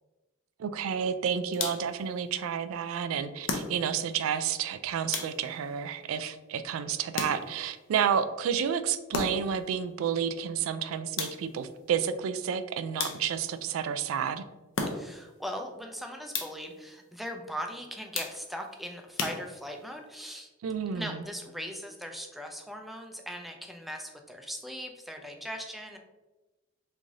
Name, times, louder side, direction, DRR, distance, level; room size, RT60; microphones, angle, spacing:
voice 1, 0.6-14.4 20.6-21.2, right 7 dB, 80° right, 12 dB, 0.3 m, -30 dB
sound 1, 1.5-2.0 3.4-4.1 5.1-5.7 7.1-7.7 9.1-9.6 11.2-11.7 13.0-13.6 14.7-15.3 16.3-16.8 18.1-18.7 19.2-19.9, left 4 dB, 65° left, 0.6 m, -35 dB
voice 2, 14.8-20.5 20.9-26.0, equal, ahead, 3 dB, 0.4 m, -39 dB
3.2 x 2.6 x 3.6 m, 1.1 s
head